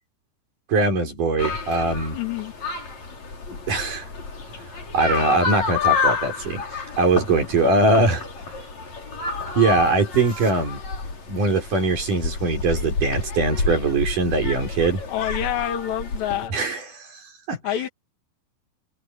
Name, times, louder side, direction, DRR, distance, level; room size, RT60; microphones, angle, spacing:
voice 1, 0.7-2.2 3.7-4.1 4.5-4.6 4.9-8.2 9.6-10.8 11.3-15.0 16.5-17.2 17.5-17.6, right 3 dB, 45° right, 5.9 m, -21 dB
sound 1, 1.4-16.5, left 4 dB, 40° left, 5.9 m, -29 dB
voice 2, 2.1-2.5 15.1-16.5 17.6-17.9, left 11 dB, 70° left, 4.5 m, -27 dB
omnidirectional pair, 5.3 m